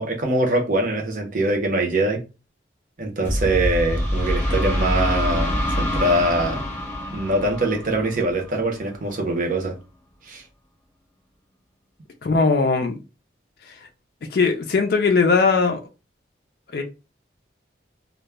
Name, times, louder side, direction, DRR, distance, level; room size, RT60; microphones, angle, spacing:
voice 1, 0.0-2.2 3.0-6.6 7.1-9.8 10.2-10.4, right 1 dB, 45° right, 0.6 m, -23 dB
sound 1, 3.2-8.9, equal, 15° left, 0.8 m, -25 dB
voice 2, 12.2-13.0 13.7-13.8 14.3-15.8 16.7-16.8, left 4 dB, 55° left, 0.3 m, -19 dB
2.2 x 2.0 x 3.3 m
head